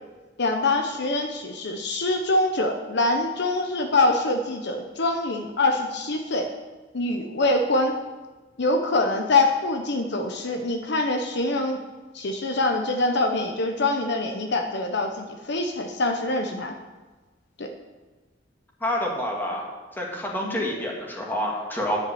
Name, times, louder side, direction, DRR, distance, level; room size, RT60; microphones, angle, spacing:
voice 1, 0.4-6.5 6.9-7.9 8.6-11.8 12.1-16.7 17.6-17.7 20.4-20.6, left 2 dB, 65° left, 4 dB, 0.9 m, -24 dB
voice 2, 18.8-19.7 20.0-22.0, equal, 10° left, -2 dB, 1.9 m, -28 dB
10.0 x 5.5 x 7.9 m, 1.3 s
head